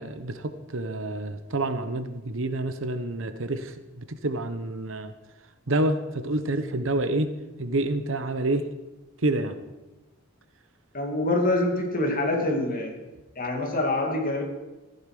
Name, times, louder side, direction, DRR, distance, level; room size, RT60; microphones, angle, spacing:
voice 1, 0.0-5.1 5.7-7.3 7.6-8.7 9.2-9.6, right 2 dB, 70° right, 10 dB, 1.0 m, -28 dB
voice 2, 10.9-12.9 13.4-14.4, left 2 dB, 40° left, 1 dB, 2.6 m, -25 dB
14.5 x 11.0 x 5.0 m, 1.1 s
head